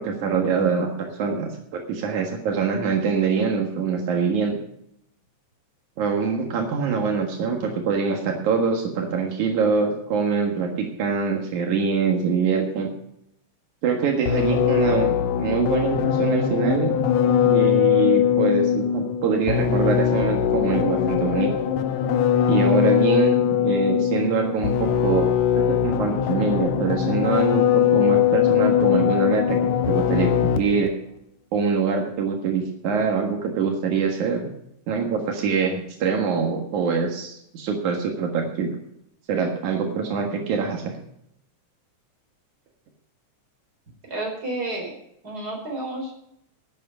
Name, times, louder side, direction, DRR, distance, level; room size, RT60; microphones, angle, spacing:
voice 1, 0.0-4.6 6.0-12.9 13.8-17.0 17.5-21.6 22.5-29.6 29.9-30.9 31.5-34.5 34.9-38.7 39.3-41.0, right 5 dB, 80° right, 2 dB, 3.0 m, -24 dB
sound 1, 14.3-30.9, left 9 dB, 75° left, 2.1 m, -21 dB
voice 2, 44.0-44.9 45.2-46.1, right 2 dB, 30° right, 0 dB, 4.8 m, -30 dB
11.5 x 9.5 x 6.9 m, 0.76 s
omnidirectional pair, 3.4 m